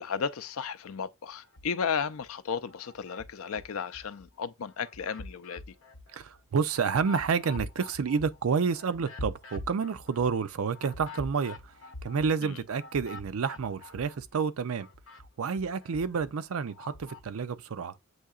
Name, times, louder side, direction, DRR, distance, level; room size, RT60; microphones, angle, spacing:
voice 1, 0.0-5.7 12.4-12.6, left 6 dB, 85° left, 0.5 m, -34 dB
sound 1, 1.4-2.3 2.7-4.3 4.7-14.4 14.7-17.3, left 2 dB, 70° left, 0.8 m, -45 dB
voice 2, 6.1-11.7 12.0-14.9 15.4-17.9, right 5 dB, 80° right, 0.5 m, -29 dB
7.8 x 2.8 x 2.4 m
head